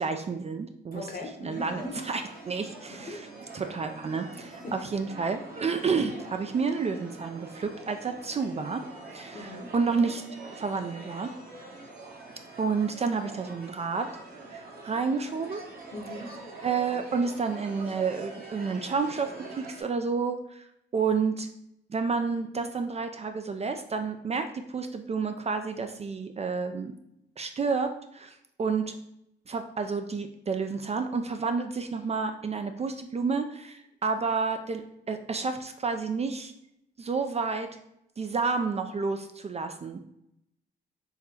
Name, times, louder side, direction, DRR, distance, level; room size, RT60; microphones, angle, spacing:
voice 1, 0.0-1.1 1.4-3.3 3.5-8.8 9.1-10.2 10.5-11.3 12.6-14.1 14.5-15.6 16.6-20.7 20.9-21.5 21.9-26.9 27.4-29.0 29.5-36.5 37.0-37.7 38.2-40.0, right 5 dB, 35° right, 7 dB, 0.4 m, -30 dB
voice 2, 0.9-1.9 3.1-3.2 4.6-4.7 9.3-9.7 15.9-16.3, left 2 dB, 50° left, 2 dB, 0.9 m, -39 dB
sound 1, 1.5-19.8, right 3 dB, 50° right, 1.2 m, -45 dB
3.8 x 2.7 x 2.8 m, 0.78 s
cardioid pair, 60°, 20 cm